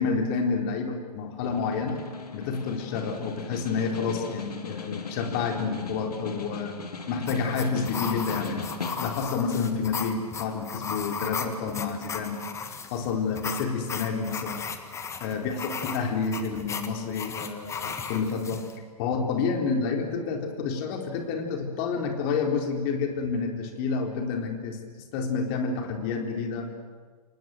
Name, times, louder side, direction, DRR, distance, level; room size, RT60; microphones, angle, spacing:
voice 1, 0.0-2.0 2.3-6.7 7.1-8.7 9.0-12.4 12.9-14.6 15.2-18.6 19.0-24.8 25.1-26.7, left 5 dB, 35° left, 3 dB, 4.0 m, -29 dB
Snare drum, 1.4-9.4, left 4 dB, 75° left, 2.6 m, -39 dB
sound 1, 7.3-18.8, left 6 dB, 15° left, 1.6 m, -36 dB
28.5 x 18.5 x 7.9 m, 1.5 s
figure-of-eight pair, 115°, 20 cm